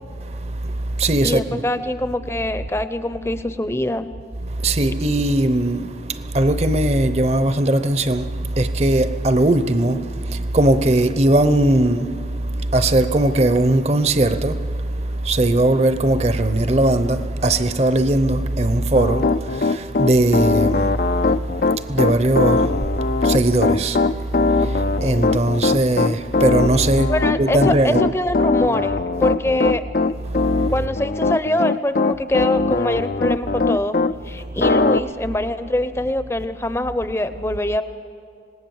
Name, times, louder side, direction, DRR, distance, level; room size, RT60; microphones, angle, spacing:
voice 1, 0.2-1.6 4.4-28.1 30.3-30.7 34.3-34.6, right 1 dB, 35° right, 0.8 m, -20 dB
voice 2, 1.2-4.1 27.1-29.8 30.7-34.0 34.2-37.8, left 1 dB, 15° left, 0.7 m, -23 dB
Piano, 19.0-34.1 34.6-35.0, left 3 dB, 50° left, 0.5 m, -20 dB
26.0 x 19.0 x 7.2 m
head